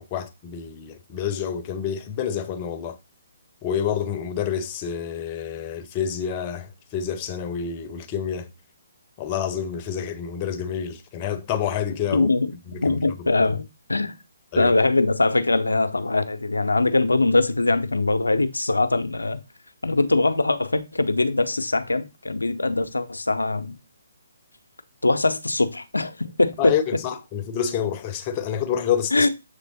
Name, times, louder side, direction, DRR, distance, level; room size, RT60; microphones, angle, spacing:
voice 1, 0.0-3.0 3.6-8.5 9.2-12.3 12.7-13.5 14.5-14.7 26.6-29.3, left 8 dB, 25° left, 0.7 m, -28 dB
voice 2, 12.1-14.1 14.6-19.4 19.8-23.8 25.0-26.7 29.1-29.3, left 2 dB, 75° left, 0.7 m, -22 dB
7.2 x 3.3 x 4.1 m
figure-of-eight pair, 135°, 0 cm